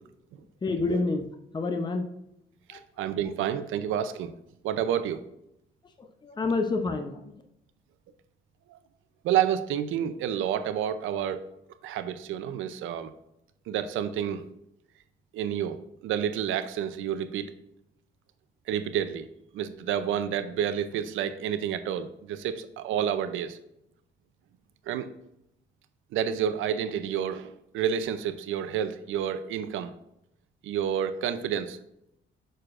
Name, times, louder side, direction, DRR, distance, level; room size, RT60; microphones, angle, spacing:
voice 1, 0.6-1.3 1.5-2.1 2.7-2.8 6.0-7.3, left 3 dB, 20° left, 6 dB, 0.7 m, -28 dB
voice 2, 2.7-4.3 4.6-5.2 8.7-8.8 9.2-11.5 11.8-13.1 13.7-14.4 15.3-17.5 18.7-19.3 19.5-23.6 24.9-25.1 26.1-29.9 30.6-31.8, right 9 dB, 85° right, 11 dB, 0.6 m, -29 dB
6.7 x 6.2 x 2.5 m, 0.81 s
cardioid pair, 90°, 20 cm